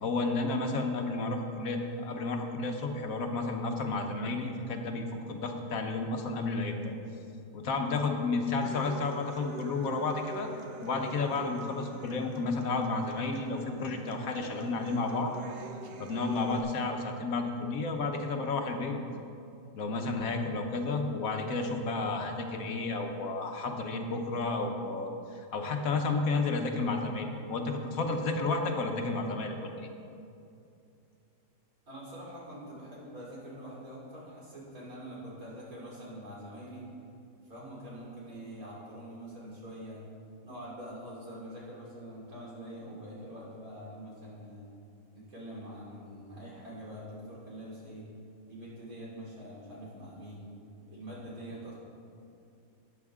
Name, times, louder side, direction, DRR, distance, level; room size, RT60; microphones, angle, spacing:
voice 1, 0.0-6.9 7.5-10.5 10.8-15.3 16.0-19.0 19.7-29.9, left 3 dB, 70° left, 4 dB, 1.3 m, -32 dB
Human voice / Acoustic guitar, 8.6-16.6, right 4 dB, 55° right, 0.7 m, -46 dB
voice 2, 31.9-36.9 37.5-40.0 40.4-44.6 45.1-48.1 48.5-50.5 50.9-51.7, right 1 dB, 75° right, -6 dB, 3.6 m, -45 dB
13.0 x 9.4 x 3.6 m, 2.5 s
omnidirectional pair, 1.5 m